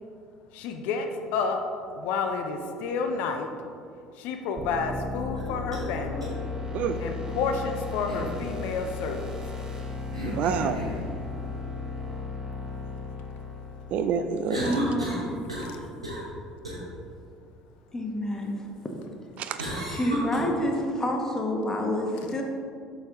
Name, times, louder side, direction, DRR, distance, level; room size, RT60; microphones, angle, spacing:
voice 1, 0.5-1.6 1.9-3.5 4.1-6.3 7.0-9.3 15.7-15.8, left 5 dB, 60° left, 5 dB, 0.5 m, -30 dB
sound 1, 4.6-14.4, left 3 dB, 25° right, 1.1 m, -35 dB
sound 2, 5.3-5.8 6.2-6.3 8.1-8.4 10.1-11.0 14.5-15.8 16.0-16.3 16.6-16.8 19.6-20.4, equal, 90° right, 1.2 m, -32 dB
voice 2, 10.2-10.9 13.9-14.8 19.4-19.6, right 6 dB, 50° right, 9 dB, 0.4 m, -28 dB
voice 3, 14.5-15.3 17.9-18.7 19.9-22.4, left 1 dB, 20° left, 1 dB, 1.1 m, -28 dB
6.4 x 5.5 x 3.6 m, 2.4 s
figure-of-eight pair, 60°, 3 cm